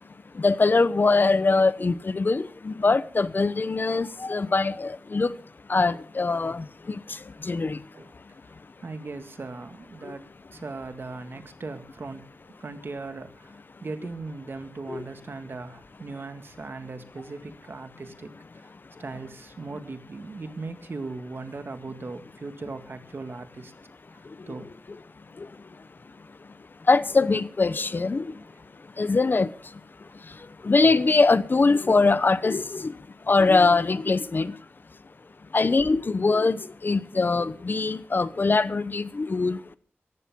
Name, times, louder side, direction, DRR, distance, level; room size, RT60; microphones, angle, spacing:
voice 1, 0.4-5.3 5.7-6.6 7.5-7.8 14.9-15.0 26.9-28.2 29.0-29.5 30.6-32.9 33.3-34.5 35.5-36.6 36.8-39.6, left 3 dB, 50° left, 0.9 m, -22 dB
voice 2, 8.8-10.2 10.5-12.2 12.6-13.5 13.8-18.3 19.0-23.7 24.5-24.7 37.1-37.4, right 3 dB, 60° right, 2.0 m, -38 dB
18.0 x 15.0 x 3.8 m
wide cardioid pair, 95°, 4 cm